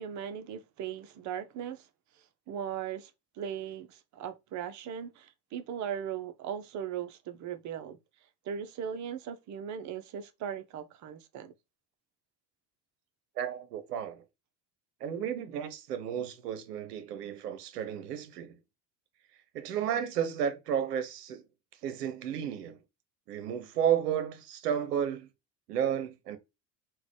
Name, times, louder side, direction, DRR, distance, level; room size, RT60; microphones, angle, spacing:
voice 1, 0.0-1.9 2.5-3.1 3.4-8.0 8.4-11.5, right 8 dB, 35° right, 0.6 m, -38 dB
voice 2, 13.4-14.2 15.0-18.6 19.5-21.4 21.8-22.8 23.3-25.3 25.7-26.4, right 9 dB, 75° right, 0.8 m, -32 dB
3.9 x 2.4 x 3.0 m
figure-of-eight pair, 65°, 48 cm